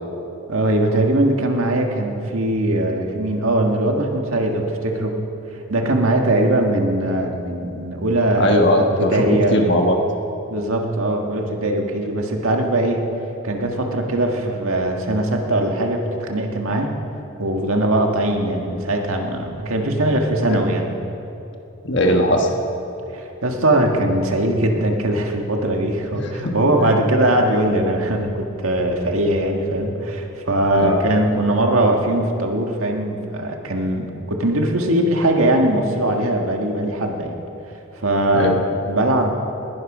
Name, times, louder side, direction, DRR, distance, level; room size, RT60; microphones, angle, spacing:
voice 1, 0.5-5.1 5.7-9.6 10.5-13.1 13.4-16.9 17.4-20.9 23.1-37.4 38.0-39.3, right 1 dB, 85° right, 2 dB, 1.7 m, -20 dB
voice 2, 8.4-9.2 9.5-10.0 20.5-20.6 21.8-22.5 26.1-26.9 30.8-31.0 38.3-38.6, left 1 dB, 55° left, 3 dB, 1.5 m, -19 dB
19.5 x 11.5 x 5.0 m, 2.9 s
head